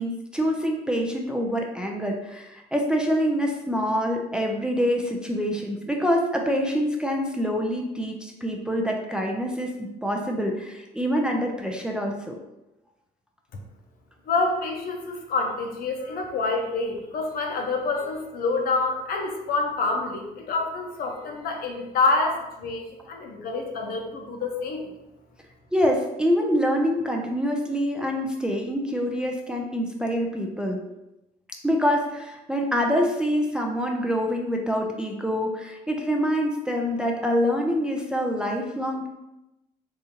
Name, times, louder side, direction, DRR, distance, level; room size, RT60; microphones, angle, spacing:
voice 1, 0.0-12.4 25.7-30.8 31.5-39.1, equal, 5° right, 1 dB, 0.4 m, -26 dB
voice 2, 14.3-24.9, left 3 dB, 60° left, 2 dB, 0.7 m, -27 dB
3.6 x 2.7 x 2.8 m, 0.95 s
cardioid pair, 110°, 17 cm